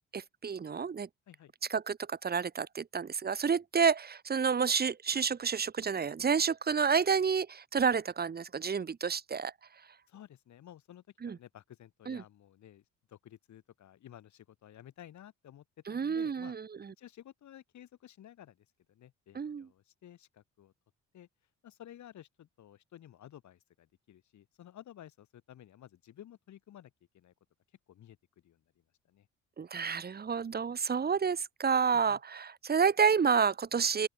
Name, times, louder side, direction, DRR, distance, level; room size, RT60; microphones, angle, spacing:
voice 1, 0.1-1.1 1.7-9.5 11.2-11.4 12.1-12.2 15.9-16.9 19.3-19.7 29.6-34.1, right 6 dB, 30° right, 1.1 m, -29 dB
voice 2, 10.1-15.6 15.9-16.6 17.0-20.7 21.1-21.3 21.6-27.3 27.9-28.2 28.4-28.6 29.1-29.3 31.9-32.2, left 11 dB, 70° left, 2.9 m, -54 dB
open air
cardioid pair, 90°, 30 cm